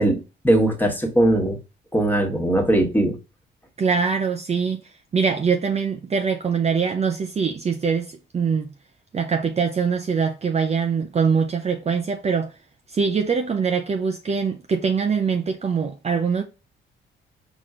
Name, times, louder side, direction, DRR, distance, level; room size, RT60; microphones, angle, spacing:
voice 1, 0.0-1.6 1.9-3.2, right 1 dB, 10° left, 1.4 m, -20 dB
voice 2, 3.8-8.7 9.1-12.5 12.9-16.4, right 5 dB, 30° right, 0.6 m, -23 dB
4.3 x 3.0 x 3.7 m
cardioid pair, 90°, 20 cm